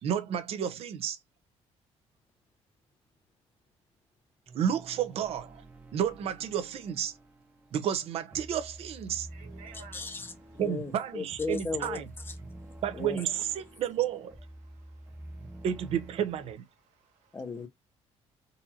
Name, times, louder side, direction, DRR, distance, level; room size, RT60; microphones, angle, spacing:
voice 1, 0.0-1.2 4.5-5.6 5.9-7.1 7.7-9.3 10.6-12.0 12.8-14.3 15.6-16.6, right 9 dB, 60° right, 0.8 m, -31 dB
sound 1, 4.5-16.6, right 1 dB, 15° right, 0.9 m, -49 dB
voice 2, 9.2-10.0 12.5-12.8 14.6-15.6 16.9-17.4, right 6 dB, 80° right, 1.7 m, -55 dB
voice 3, 9.7-12.4 12.9-13.2 17.3-17.7, left 3 dB, 20° left, 0.8 m, -37 dB
4.0 x 2.6 x 2.8 m
cardioid pair, 150°, 12 cm